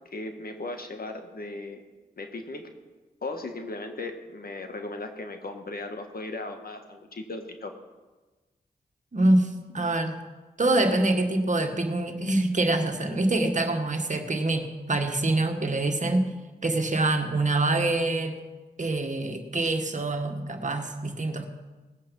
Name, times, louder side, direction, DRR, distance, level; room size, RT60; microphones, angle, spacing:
voice 1, 0.1-1.8 2.2-2.6 3.2-7.7, left 2 dB, 65° left, 5 dB, 1.7 m, -37 dB
voice 2, 9.1-10.1 10.6-16.3 16.6-18.4 18.8-21.5, right 2 dB, 50° right, 5 dB, 1.7 m, -25 dB
19.0 x 7.8 x 5.5 m, 1.2 s
cardioid pair, 40°, 17 cm